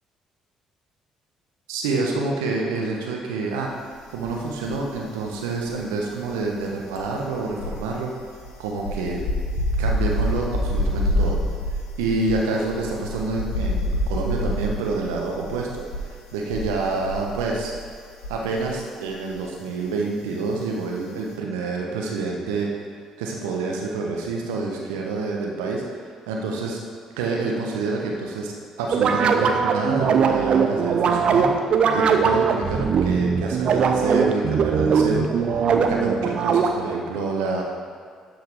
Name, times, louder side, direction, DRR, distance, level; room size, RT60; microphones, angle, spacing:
voice 1, 1.7-3.7 4.1-8.1 8.6-9.2 9.8-11.4 11.7-17.7 18.3-22.7 23.2-26.8 27.2-28.5 28.8-37.6, right 3 dB, 75° right, -1 dB, 1.3 m, -27 dB
sound 1, 4.2-5.0 5.3-18.8 19.1-19.3, left 1 dB, 75° left, 1.2 m, -27 dB
sound 2, 28.9-37.0, right 6 dB, 50° right, 0.7 m, -20 dB
12.5 x 4.7 x 4.8 m, 2.1 s
figure-of-eight pair, 50°, 2 cm